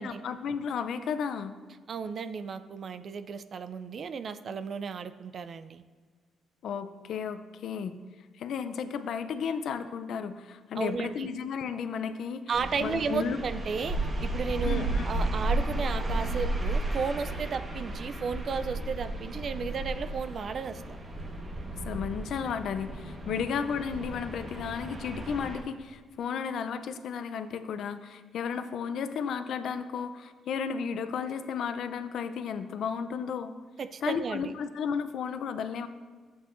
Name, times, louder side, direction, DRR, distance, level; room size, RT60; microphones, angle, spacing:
voice 1, 0.0-1.5 6.6-8.0 8.4-12.4 12.8-13.4 14.6-15.1 21.8-33.6 34.0-35.9, left 6 dB, 70° left, 10 dB, 0.5 m, -33 dB
voice 2, 1.9-5.8 10.7-11.3 12.5-21.0 23.3-23.4 33.8-34.5, right 5 dB, 50° right, 11 dB, 0.4 m, -34 dB
sound 1, 12.5-25.6, right 1 dB, 30° right, 1.2 m, -33 dB
12.0 x 7.9 x 2.6 m, 1.5 s
cardioid pair, 90°, 0 cm